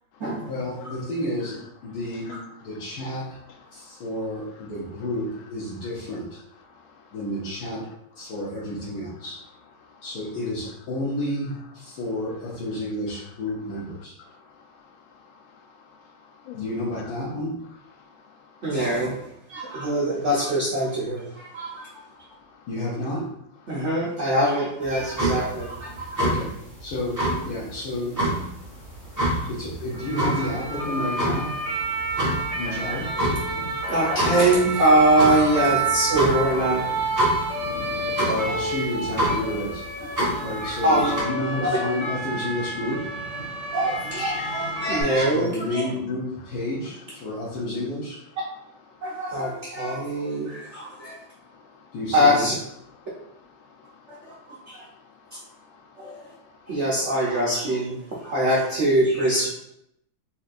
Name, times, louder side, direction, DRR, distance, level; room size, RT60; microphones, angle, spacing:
voice 1, 0.5-2.3 2.6-3.4 3.7-6.4 7.1-7.9 8.1-9.4 10.0-14.1 16.5-17.6 22.7-23.3 26.2-26.5 26.8-28.3 29.5-31.5 32.5-33.1 38.3-39.8 40.4-43.1 45.1-48.2 51.9-52.5, left 1 dB, 60° left, -7 dB, 1.2 m, -30 dB
voice 2, 3.7-4.0 6.7-7.1 9.8-10.0 14.2-16.6 16.9-17.1 18.0-18.7 19.7-19.9 21.5-22.7 23.7-23.9 28.7-29.5 32.1-32.6 33.8-33.9 38.1-38.3 43.5-43.7 44.8-44.9 48.9-49.4 50.5-51.9 53.0-53.3 53.6-56.8, left 6 dB, 80° left, 2 dB, 1.4 m, -51 dB
voice 3, 18.6-21.9 23.7-26.2 33.9-36.9 40.6-41.1 43.7-45.8 49.0-51.1 52.1-52.5 54.3-54.4 54.7-54.8 56.0-56.2 56.7-59.5, right 1 dB, 75° right, -6 dB, 0.6 m, -23 dB
sound 1, 24.8-41.2, right 1 dB, 15° right, 0.9 m, -28 dB
sound 2, 29.9-45.0, right 2 dB, 15° left, 0.9 m, -29 dB
4.2 x 3.2 x 2.5 m, 0.77 s
omnidirectional pair, 2.2 m